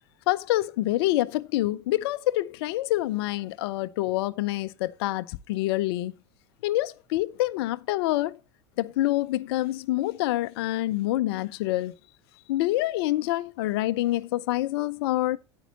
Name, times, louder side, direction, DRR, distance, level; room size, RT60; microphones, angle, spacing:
voice 1, 0.3-6.1 6.6-8.4 8.8-11.9 12.5-15.4, left 16 dB, 60° left, 0.5 m, -26 dB
9.4 x 9.0 x 2.9 m
figure-of-eight pair, 80°, 15 cm